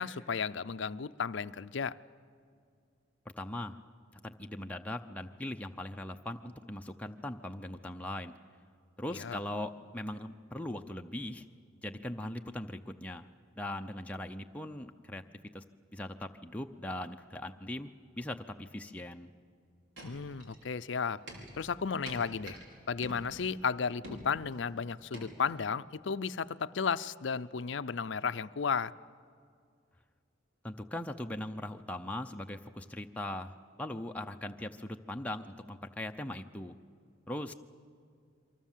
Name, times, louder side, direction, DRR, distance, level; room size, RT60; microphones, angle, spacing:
voice 1, 0.0-1.9 9.1-9.4 20.0-21.2 21.5-22.6 22.9-28.9, left 6 dB, 65° left, 15 dB, 0.5 m, -34 dB
voice 2, 3.4-3.8 4.2-8.3 9.0-11.4 11.8-13.3 13.6-15.2 15.5-15.6 15.9-17.9 18.2-19.3 30.6-36.7 37.3-37.5, left 1 dB, 5° left, 4 dB, 0.6 m, -40 dB
sound 1, 20.0-20.7 21.1-22.7 23.0-23.6 24.0-24.6 25.1-25.5, equal, 75° right, 4.7 m, -47 dB
28.0 x 24.0 x 7.4 m, 2.3 s
head